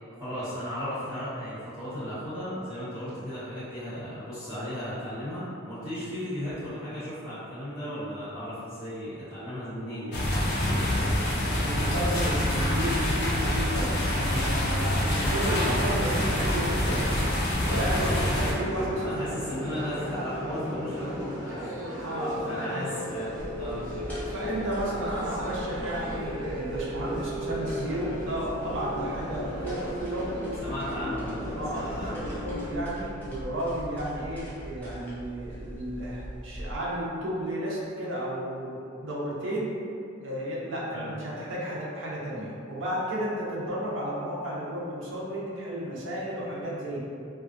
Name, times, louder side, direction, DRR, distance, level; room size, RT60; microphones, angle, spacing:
voice 1, 0.2-10.3 10.6-11.2 17.9-18.2 18.9-23.8 30.6-31.4 31.7-32.4 40.9-41.1, equal, 10° right, -20 dB, 1.4 m, -36 dB
sound 1, 10.1-18.5, left 1 dB, 55° left, 0.5 m, -26 dB
voice 2, 11.6-17.1 17.6-19.3 22.0-22.8 24.3-30.3 31.5-39.7 40.1-47.0, right 1 dB, 65° right, -5 dB, 0.6 m, -33 dB
sound 2, 17.6-32.8, equal, 40° right, 1.1 m, -35 dB
sound 3, 23.4-36.7, equal, 10° left, 0.5 m, -41 dB
2.5 x 2.4 x 2.5 m, 2.5 s
head